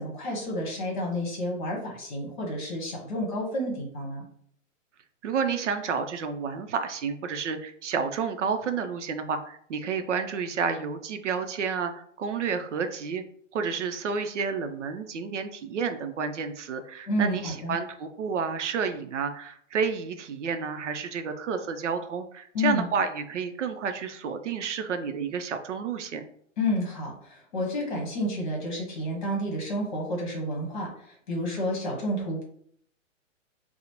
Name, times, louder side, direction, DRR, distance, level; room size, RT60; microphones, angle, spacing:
voice 1, 0.0-4.2 17.1-17.7 22.5-22.9 26.6-32.4, left 1 dB, 35° left, -1 dB, 1.1 m, -30 dB
voice 2, 5.2-13.2 13.5-26.2, right 6 dB, 65° right, 8 dB, 0.5 m, -30 dB
4.9 x 2.0 x 2.9 m, 0.64 s
hypercardioid pair, 180°, 39 cm